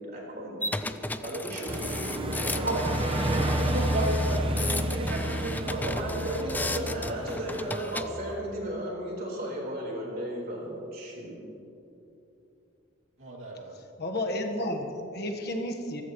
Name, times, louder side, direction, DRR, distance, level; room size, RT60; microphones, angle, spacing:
voice 1, 0.1-0.9 1.2-2.7 5.7-11.4, right 1 dB, 50° right, -3 dB, 4.3 m, -35 dB
sound 1, 0.6-8.1, left 2 dB, 10° left, 0.4 m, -35 dB
sound 2, 1.7-7.8, right 1 dB, 25° right, 1.0 m, -30 dB
voice 2, 3.7-6.5 13.2-13.8, right 2 dB, 75° right, -3 dB, 2.4 m, -34 dB
voice 3, 14.0-16.0, left 1 dB, 50° left, 2 dB, 1.3 m, -32 dB
25.0 x 15.0 x 3.1 m, 2.8 s
head